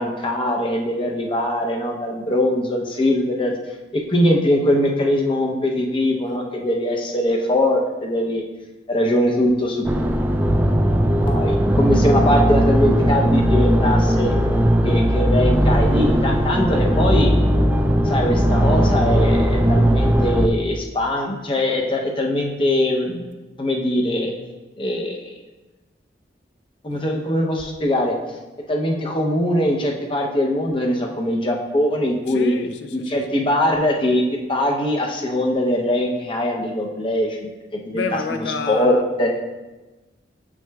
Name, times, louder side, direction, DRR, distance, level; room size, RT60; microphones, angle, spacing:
voice 1, 0.0-3.5 3.9-8.4 8.9-9.8 11.3-14.3 14.8-17.3 18.0-23.3 23.6-24.3 24.8-25.2 26.8-28.1 28.7-32.5 32.9-38.0 38.3-39.3, left 1 dB, 30° left, 0.6 m, -21 dB
sound 1, 9.8-20.5, equal, 10° right, 0.3 m, -18 dB
voice 2, 32.3-33.5 37.9-39.0, left 4 dB, 80° left, 0.4 m, -29 dB
7.7 x 6.0 x 2.3 m
head